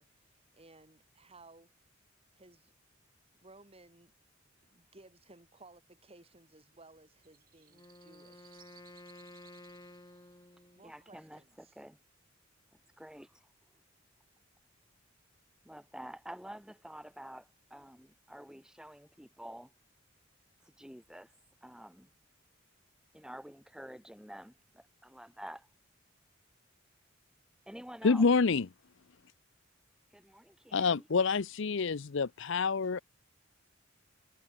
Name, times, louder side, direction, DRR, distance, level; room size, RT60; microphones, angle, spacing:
voice 1, 0.0-1.7 2.3-2.7 3.3-4.1 4.6-8.6 10.7-11.7, right 2 dB, 30° right, 3.8 m, -59 dB
sound 1, 6.3-11.5, right 10 dB, 45° right, 5.7 m, -65 dB
Wind instrument woodwind instrument, 7.7-11.0, left 1 dB, 20° left, 1.9 m, -53 dB
voice 2, 10.8-12.0 12.7-13.5 15.6-19.7 20.6-21.3 21.6-22.1 23.1-25.7 27.7-28.3 30.1-31.1, equal, 5° right, 2.9 m, -49 dB
voice 3, 28.0-28.7 30.7-33.0, left 4 dB, 60° left, 0.6 m, -27 dB
head